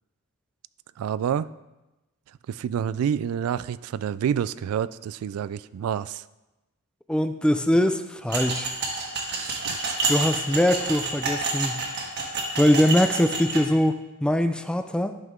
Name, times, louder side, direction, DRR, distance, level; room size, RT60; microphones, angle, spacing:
voice 1, 1.0-1.5 2.5-6.2 9.3-10.0, right 8 dB, 85° right, 17 dB, 0.3 m, -28 dB
voice 2, 7.1-8.7 10.1-11.8 12.6-15.2, left 1 dB, 5° left, 9 dB, 0.3 m, -22 dB
sound 1, 8.3-13.6, right 3 dB, 50° right, 1.5 m, -28 dB
11.0 x 5.6 x 3.7 m, 1.0 s
head